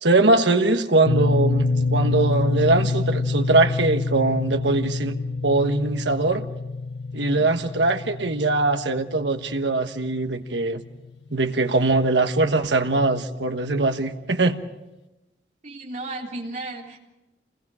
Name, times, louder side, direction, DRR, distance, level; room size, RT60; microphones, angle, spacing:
voice 1, 0.0-5.2 5.4-6.4 7.1-10.8 11.3-14.6, right 2 dB, 85° right, 7 dB, 1.4 m, -21 dB
sound 1, 1.0-11.0, left 3 dB, 85° left, 1.1 m, -27 dB
voice 2, 15.6-17.0, right 2 dB, 45° right, -1 dB, 3.6 m, -34 dB
28.0 x 20.5 x 5.0 m, 0.99 s
head